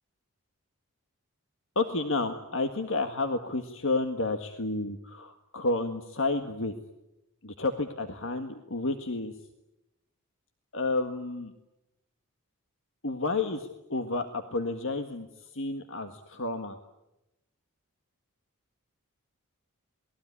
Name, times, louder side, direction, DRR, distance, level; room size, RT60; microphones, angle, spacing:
voice 1, 1.8-6.7 7.4-9.3 10.7-11.5 13.0-16.8, left 3 dB, 60° left, 7 dB, 1.7 m, -31 dB
28.0 x 20.5 x 9.9 m, 0.91 s
head